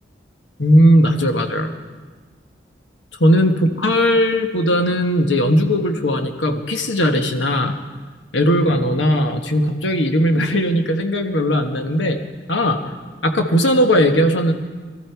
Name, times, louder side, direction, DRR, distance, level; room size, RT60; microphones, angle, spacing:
voice 1, 0.6-1.7 3.2-7.8 8.3-12.2 12.5-12.8 13.2-14.5, equal, 85° left, 5 dB, 1.4 m, -17 dB
22.0 x 13.5 x 4.6 m, 1.4 s
head